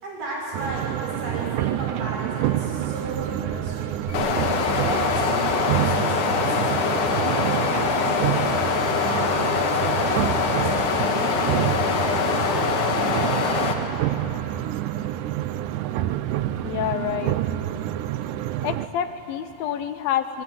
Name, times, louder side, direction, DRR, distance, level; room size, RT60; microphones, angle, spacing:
voice 1, 0.0-3.9 4.5-8.0 8.7-11.6 11.9-12.9, right 1 dB, 60° right, -3 dB, 7.7 m, -35 dB
sound 1, 0.5-18.9, right 12 dB, 80° right, 1.8 m, -27 dB
sound 2, 4.1-13.7, left 6 dB, 60° left, 2.8 m, -24 dB
voice 2, 16.6-17.4 18.6-20.4, left 10 dB, 75° left, 10 dB, 2.5 m, -27 dB
25.0 x 20.5 x 9.5 m, 3.0 s
omnidirectional pair, 4.4 m